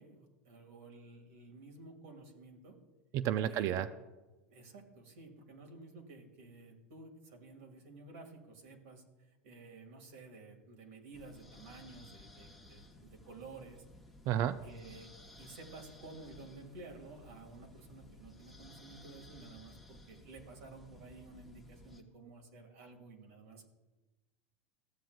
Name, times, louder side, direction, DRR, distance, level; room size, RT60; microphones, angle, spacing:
voice 1, 0.0-2.8 3.4-3.9 4.5-9.0 9.4-13.8 14.6-15.1 15.4-23.6, right 3 dB, 75° right, 2 dB, 1.9 m, -53 dB
voice 2, 3.1-3.9 14.3-14.6, right 11 dB, 45° right, 12 dB, 0.4 m, -31 dB
sound 1, 11.1-22.0, left 2 dB, ahead, 1.0 m, -57 dB
14.5 x 7.5 x 2.3 m, 1.2 s
supercardioid pair, 125°, 7 cm